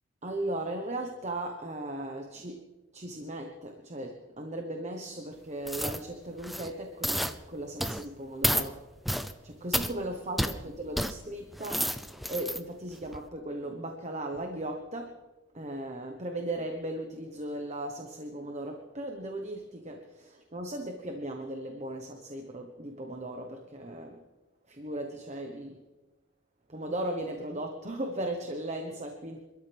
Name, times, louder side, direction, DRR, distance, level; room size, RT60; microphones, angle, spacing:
voice 1, 0.2-2.6 2.9-8.8 9.4-11.9 12.3-15.2 15.5-24.2 24.7-25.8 26.7-29.4, right 1 dB, 35° right, 4 dB, 1.2 m, -37 dB
sound 1, 5.7-6.0 6.4-6.7 7.0-7.3 7.8-8.0 8.4-8.7 9.1-9.3 9.7-9.9 10.4-10.5 11.0-11.1 11.5-12.6 13.1-13.2, equal, ahead, 0.6 m, -30 dB
28.0 x 13.0 x 3.5 m, 1.1 s
head